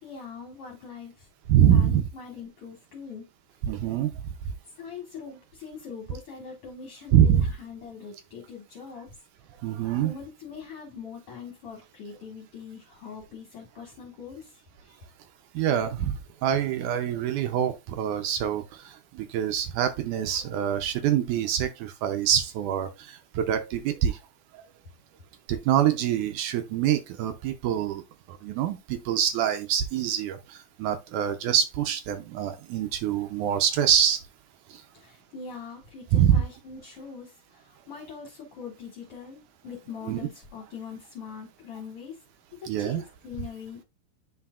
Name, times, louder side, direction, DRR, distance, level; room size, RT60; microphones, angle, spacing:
voice 1, 0.0-1.3 1.7-3.2 4.7-9.1 10.0-15.0 34.9-42.2 42.5-43.8, left 6 dB, 50° left, 2.2 m, -42 dB
voice 2, 1.5-2.0 3.6-4.1 7.1-7.5 9.6-10.1 15.6-24.2 25.5-28.0 28.3-34.2 36.1-36.4 40.1-40.2 42.7-43.0, right 9 dB, 75° right, 2.0 m, -25 dB
9.9 x 4.3 x 2.4 m
omnidirectional pair, 3.9 m